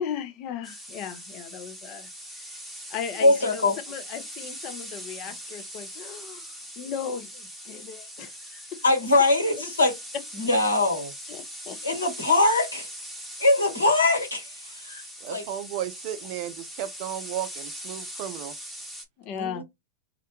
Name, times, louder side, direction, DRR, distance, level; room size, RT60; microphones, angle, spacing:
voice 1, 0.0-2.6 2.9-6.5 6.8-8.8 11.3-11.8 19.2-19.6, left 7 dB, 45° left, 0.5 m, -37 dB
sound 1, 0.6-19.0, equal, ahead, 0.9 m, -41 dB
voice 2, 3.2-3.7 8.8-9.9 10.4-11.1 11.8-12.9 13.4-14.5 14.8-15.0 15.3-15.4 19.3-19.6, left 2 dB, 90° left, 1.2 m, -22 dB
voice 3, 15.2-18.5, right 11 dB, 50° right, 0.5 m, -34 dB
2.4 x 2.1 x 2.8 m
hypercardioid pair, 100°, 0 cm